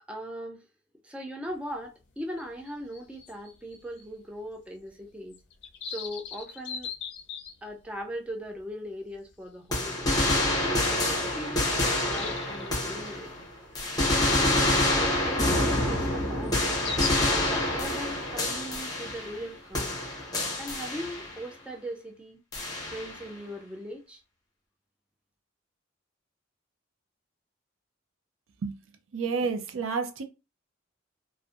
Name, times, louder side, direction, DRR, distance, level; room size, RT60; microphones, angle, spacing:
voice 1, 0.1-0.6 1.0-5.4 5.9-6.9 7.6-10.1 10.6-13.3 14.1-16.7 17.3-20.0 20.6-22.4 22.9-24.2, equal, 5° right, 0.3 m, -39 dB
sound 1, 1.5-1.6 1.8-1.9 2.3-4.1 4.4-4.5 4.9-5.0 5.3-7.9 8.6-8.7 9.1-9.3 9.7-9.9 10.8-10.9 11.3-12.7 13.8-14.0 14.5-14.6 16.4-17.2, left 6 dB, 60° left, 0.4 m, -39 dB
sound 2, 9.7-13.4 13.7-19.5 19.7-21.4 22.5-23.2, left 1 dB, 20° left, 0.7 m, -27 dB
voice 2, 29.1-30.2, right 5 dB, 85° right, 0.5 m, -29 dB
2.5 x 2.1 x 2.4 m
head